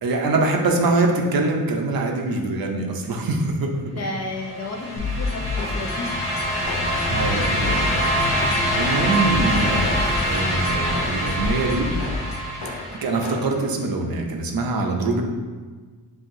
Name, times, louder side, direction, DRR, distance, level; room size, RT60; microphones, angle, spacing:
voice 1, 0.0-3.7 7.1-8.4 8.8-11.9 13.0-15.2, right 2 dB, 60° right, 2 dB, 0.6 m, -24 dB
voice 2, 3.9-6.2 6.6-7.2 7.6-7.9 8.4-8.5, left 2 dB, 40° left, 0 dB, 0.6 m, -33 dB
sound 1, 4.4-13.3, equal, 15° left, 1.3 m, -24 dB
sound 2, 5.0-13.5, left 3 dB, 90° left, 0.7 m, -30 dB
sound 3, 6.6-11.9, equal, 10° right, 0.7 m, -36 dB
5.5 x 2.8 x 2.6 m, 1.4 s
wide cardioid pair, 120°, 39 cm